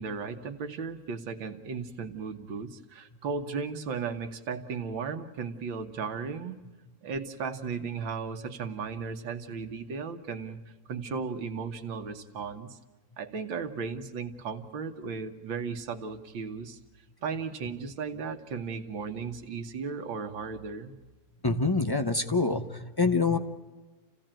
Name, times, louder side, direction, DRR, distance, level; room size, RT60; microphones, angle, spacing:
voice 1, 0.0-6.6 7.0-10.6 10.9-12.8 13.2-16.8 17.2-20.9, right 5 dB, 85° right, 7 dB, 2.2 m, -35 dB
voice 2, 21.4-23.4, left 3 dB, 30° left, 9 dB, 0.4 m, -26 dB
29.5 x 16.5 x 9.0 m, 1.3 s
omnidirectional pair, 2.0 m